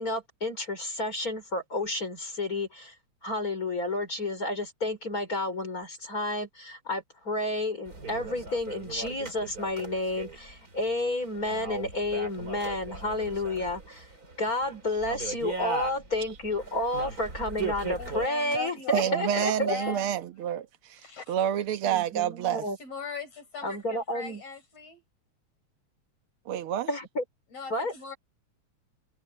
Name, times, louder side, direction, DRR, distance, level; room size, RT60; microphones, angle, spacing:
voice 1, 0.0-2.9 3.2-14.1 14.4-19.9 21.9-22.8 23.6-24.4 26.9-27.2 27.7-27.9, left 1 dB, 30° left, 4.8 m, -31 dB
sound 1, 7.8-18.3, right 3 dB, 30° right, 4.1 m, -38 dB
voice 2, 18.0-20.1 21.0-21.3 22.8-25.0 27.5-28.2, left 5 dB, 55° left, 6.7 m, -39 dB
voice 3, 18.9-21.0 21.3-22.6 26.5-26.9, right 10 dB, 60° right, 1.7 m, -28 dB
omnidirectional pair, 3.3 m